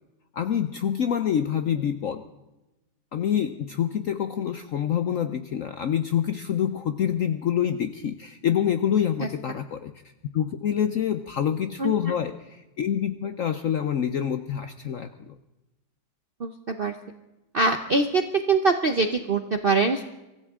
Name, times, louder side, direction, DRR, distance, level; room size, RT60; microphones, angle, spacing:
voice 1, 0.3-2.2 3.1-9.9 10.3-15.4, left 9 dB, 65° left, 9 dB, 0.8 m, -26 dB
voice 2, 16.4-16.9 17.5-18.2 18.5-20.0, right 3 dB, 55° right, 7 dB, 0.6 m, -23 dB
24.0 x 15.5 x 3.6 m, 1.0 s
omnidirectional pair, 2.1 m